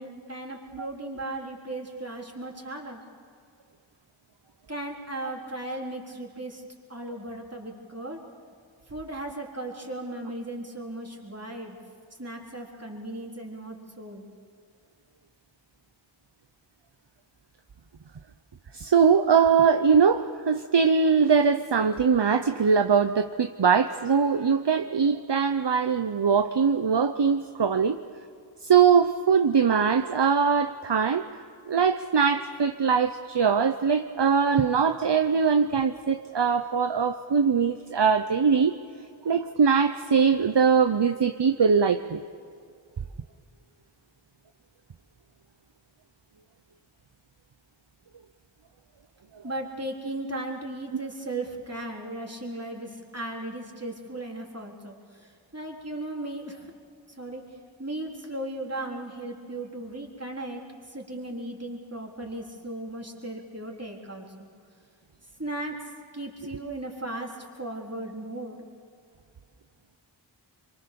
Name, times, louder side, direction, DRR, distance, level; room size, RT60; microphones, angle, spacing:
voice 1, 0.0-3.0 4.7-6.6 6.9-8.2 8.9-11.8 12.2-14.2 49.4-56.7 57.2-57.4 57.8-60.6 60.9-64.5 65.4-68.6, right 1 dB, 30° right, -1 dB, 3.9 m, -36 dB
voice 2, 18.7-28.0 28.6-31.3 31.7-38.8 39.2-42.2, right 6 dB, 60° right, 8 dB, 0.8 m, -22 dB
27.0 x 23.5 x 6.9 m, 2.3 s
wide cardioid pair, 45°, 47 cm